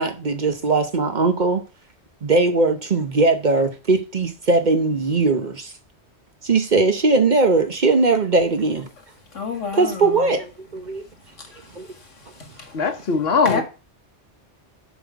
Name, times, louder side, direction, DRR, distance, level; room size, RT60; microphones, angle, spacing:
voice 1, 0.0-1.6 2.2-5.7 6.4-8.9 9.8-11.1 11.7-11.9, right 3 dB, 45° right, 0.9 m, -19 dB
voice 2, 9.3-10.3 11.4-12.8 13.4-13.6, left 4 dB, 90° left, 2.3 m, -31 dB
voice 3, 12.7-13.6, left 5 dB, 60° left, 1.2 m, -20 dB
7.3 x 5.4 x 4.7 m
omnidirectional pair, 1.2 m